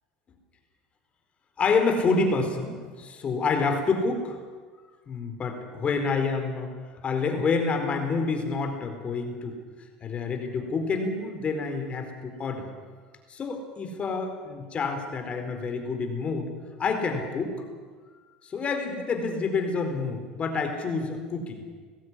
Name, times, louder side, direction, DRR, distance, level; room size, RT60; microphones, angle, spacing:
voice 1, 1.6-4.4 5.1-6.7 7.0-9.5 10.0-12.7 13.3-16.5 16.8-17.5 18.4-21.6, left 4 dB, 35° left, 5 dB, 4.5 m, -28 dB
19.5 x 15.0 x 9.9 m, 1.5 s
supercardioid pair, 95°, 4 cm